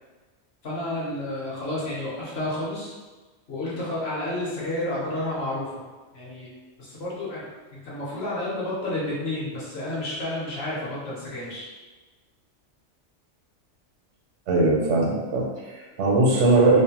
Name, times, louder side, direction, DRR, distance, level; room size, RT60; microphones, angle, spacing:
voice 1, 0.6-2.9 3.5-5.7 6.1-6.5 6.8-7.4 7.8-11.7, left 1 dB, 60° left, -7 dB, 1.1 m, -30 dB
voice 2, 14.5-16.8, right 2 dB, 85° right, -2 dB, 1.0 m, -20 dB
2.7 x 2.1 x 2.8 m, 1.3 s
omnidirectional pair, 1.2 m